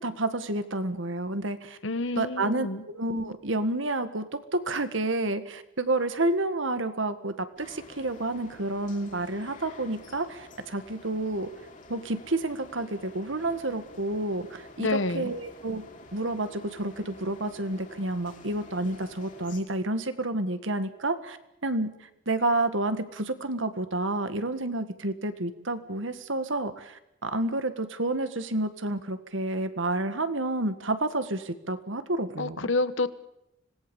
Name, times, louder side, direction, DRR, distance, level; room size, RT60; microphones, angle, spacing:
voice 1, 0.0-1.8 2.2-11.5 11.9-15.8 16.1-21.4 21.6-21.9 22.3-32.6, right 2 dB, 75° right, 10 dB, 1.8 m, -30 dB
voice 2, 1.8-2.9 14.8-15.3 32.4-33.1, left 2 dB, 70° left, 14 dB, 1.2 m, -28 dB
sound 1, 7.6-19.6, left 2 dB, 40° left, 2.9 m, -49 dB
25.5 x 18.5 x 7.1 m, 0.83 s
head